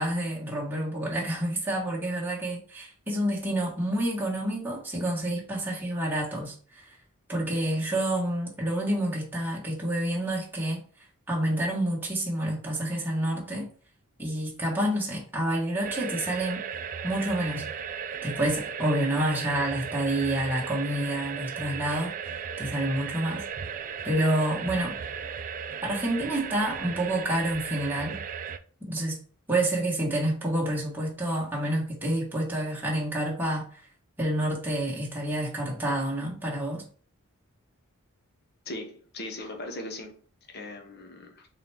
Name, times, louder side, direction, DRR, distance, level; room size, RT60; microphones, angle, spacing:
voice 1, 0.0-6.8 7.3-10.8 11.3-13.7 14.2-16.6 17.0-17.7 18.2-23.4 24.0-25.0 25.8-28.2 28.8-29.2 29.5-33.8 34.2-36.8, right 1 dB, 10° right, -5 dB, 1.2 m, -28 dB
sound 1, 15.8-28.6, right 7 dB, 35° right, 0.3 m, -36 dB
voice 2, 38.7-40.2 40.5-41.5, left 1 dB, 50° left, 3 dB, 0.9 m, -39 dB
3.9 x 3.1 x 3.4 m, 0.43 s
head